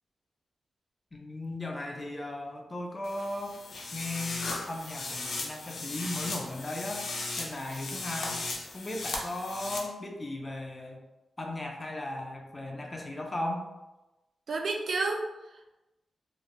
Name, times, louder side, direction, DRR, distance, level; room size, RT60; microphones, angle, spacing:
voice 1, 1.1-3.6 3.9-7.1 7.4-8.4 8.7-11.0 11.4-13.7, left 1 dB, 20° left, 1 dB, 0.3 m, -36 dB
sound 1, 3.0-9.8, left 3 dB, 80° left, 0.4 m, -37 dB
voice 2, 14.5-15.7, right 3 dB, 60° right, 2 dB, 0.3 m, -31 dB
2.4 x 2.0 x 2.9 m, 1.0 s
wide cardioid pair, 145°, 0 cm